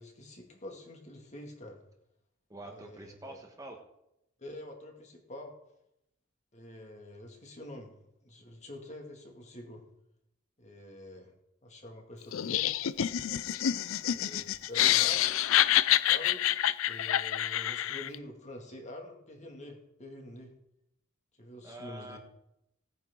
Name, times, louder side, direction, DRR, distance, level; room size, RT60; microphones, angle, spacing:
voice 1, 0.0-1.8 2.6-3.4 4.4-5.5 6.5-7.9 8.2-9.8 10.6-11.3 11.6-12.8 14.1-15.7 16.1-16.6 16.9-20.5 21.4-22.2, left 1 dB, 35° left, 2 dB, 2.4 m, -47 dB
voice 2, 2.5-3.8 21.6-22.2, right 1 dB, 15° right, 2 dB, 1.3 m, -46 dB
Laughter, 12.3-18.2, left 12 dB, 85° left, 0.5 m, -27 dB
18.5 x 9.4 x 3.9 m, 0.83 s
head